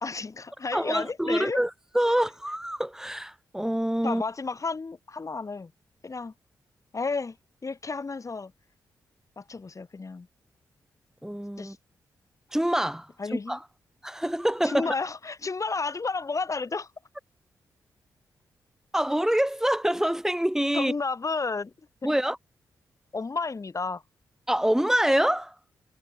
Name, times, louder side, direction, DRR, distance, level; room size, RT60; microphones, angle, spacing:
voice 1, 0.0-1.6 4.0-5.7 6.0-6.3 6.9-7.4 7.6-8.5 9.4-10.3 11.6-11.8 13.2-13.6 14.6-16.9 20.7-21.7 23.1-24.0, left 4 dB, 40° left, 3.1 m, -32 dB
voice 2, 0.7-4.2 11.2-11.8 12.5-13.1 13.5-13.6 14.0-14.9 18.9-20.9 22.0-22.4 24.5-25.5, equal, 5° right, 3.3 m, -26 dB
supercardioid pair, 40°, 8 cm